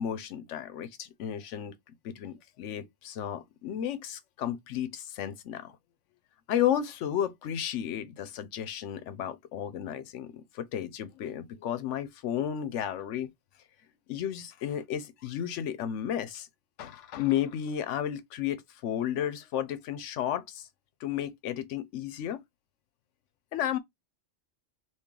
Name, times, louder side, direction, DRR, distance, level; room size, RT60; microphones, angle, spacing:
voice 1, 0.0-1.7 2.0-5.8 6.5-13.3 14.1-16.5 16.8-20.7 21.0-22.4 23.5-23.8, left 10 dB, 80° left, 0.9 m, -33 dB
3.1 x 2.4 x 3.6 m
omnidirectional pair, 1.2 m